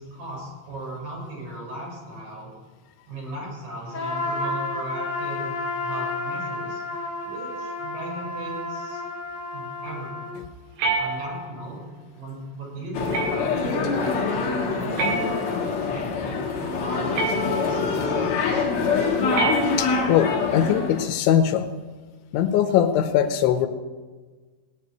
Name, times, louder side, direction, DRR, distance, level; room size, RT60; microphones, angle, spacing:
voice 1, 0.0-2.5 3.1-6.8 7.2-9.0 9.5-10.3 11.0-11.8 12.1-18.7, right 2 dB, 45° right, -4 dB, 7.1 m, -37 dB
Trumpet, 3.9-10.4, left 2 dB, 30° left, 2.5 m, -31 dB
sound 1, 10.8-11.7 13.1-13.7 15.0-15.8 17.2-17.9 19.3-20.2, right 3 dB, 65° right, 3.4 m, -28 dB
sound 2, 12.9-21.0, left 4 dB, 55° left, 2.1 m, -25 dB
voice 2, 19.8-21.7 22.3-23.7, left 10 dB, 80° left, 8 dB, 3.1 m, -21 dB
18.0 x 6.3 x 9.8 m, 1.3 s
omnidirectional pair, 5.5 m